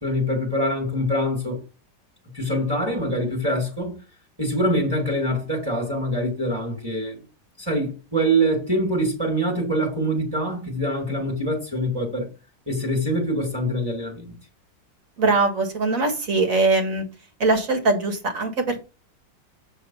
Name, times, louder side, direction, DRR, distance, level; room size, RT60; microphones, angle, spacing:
voice 1, 0.0-1.6 2.3-3.9 4.4-7.2 7.6-12.3 12.7-14.3, equal, 15° right, 2.3 m, -24 dB
voice 2, 15.2-17.1 17.4-18.8, right 3 dB, 50° right, 2.1 m, -21 dB
7.7 x 3.8 x 5.6 m
omnidirectional pair, 1.9 m